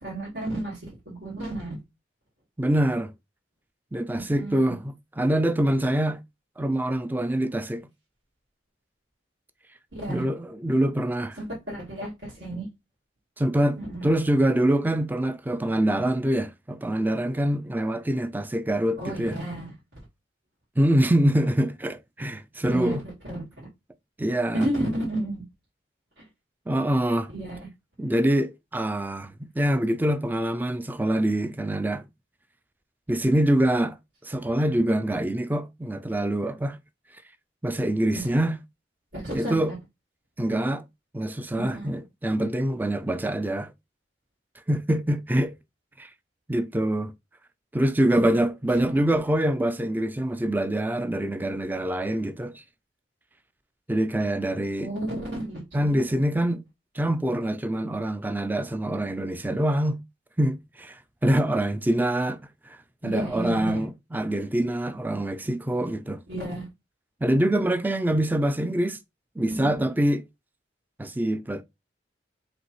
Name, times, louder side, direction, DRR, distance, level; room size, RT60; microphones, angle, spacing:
voice 1, 0.0-0.8 1.1-1.8 4.1-4.8 9.9-10.3 11.4-12.7 13.8-14.2 19.0-19.7 22.7-23.0 23.3-23.4 24.5-25.4 27.3-27.7 38.1-38.3 39.1-39.6 41.6-41.9 48.1-48.4 48.8-49.0 54.8-56.2 63.0-63.8 66.3-66.6 69.5-69.9, right 1 dB, 75° right, 2.2 m, -32 dB
voice 2, 2.6-3.1 3.9-6.2 6.6-7.9 10.1-11.4 13.4-19.4 20.8-23.0 24.2-25.0 26.7-27.3 28.0-32.0 33.1-34.0 34.2-36.8 37.6-38.6 39.3-39.7 40.4-40.8 41.1-43.7 44.7-45.5 46.0-46.1 46.5-47.1 47.7-52.6 53.9-54.9 55.7-56.6 56.9-60.0 60.4-62.4 62.7-62.8 63.0-66.2 67.2-69.0 69.4-70.2 71.0-71.6, right 1 dB, 10° right, 0.3 m, -25 dB
5.1 x 3.3 x 3.0 m
head